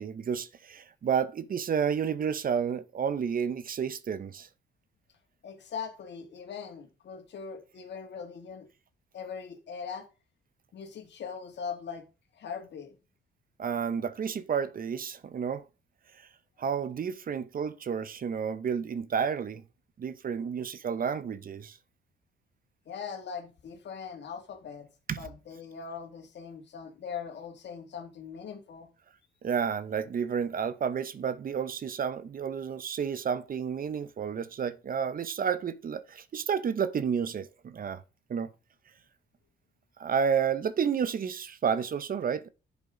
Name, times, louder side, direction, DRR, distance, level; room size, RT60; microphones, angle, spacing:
voice 1, 0.0-4.5 13.6-15.6 16.2-16.3 16.6-19.6 20.0-21.8 25.1-25.3 29.4-38.0 38.3-38.5 40.0-42.5, right 7 dB, 45° right, 0.8 m, -31 dB
voice 2, 5.4-8.7 9.1-10.1 10.7-12.1 12.4-12.9 22.9-24.9 25.2-28.9, left 6 dB, 60° left, 2.4 m, -40 dB
10.0 x 7.1 x 3.8 m
cardioid pair, 90°, 20 cm